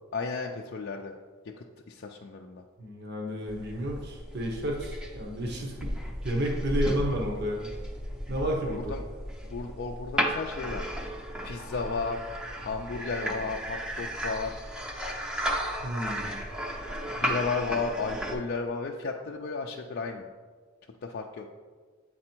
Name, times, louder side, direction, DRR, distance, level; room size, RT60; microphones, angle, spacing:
voice 1, 0.1-1.1 1.9-2.6 8.7-9.0 9.5-10.8 11.4-12.2 12.6-14.6 17.2-20.3 21.0-21.5, left 4 dB, 50° left, 1 dB, 0.4 m, -33 dB
voice 2, 2.8-5.9 6.2-7.7 8.3-8.9 15.8-16.3, equal, 50° right, 0 dB, 1.0 m, -31 dB
sound 1, 3.5-18.4, equal, 5° right, 0.6 m, -34 dB
8.5 x 4.1 x 4.5 m, 1.5 s
head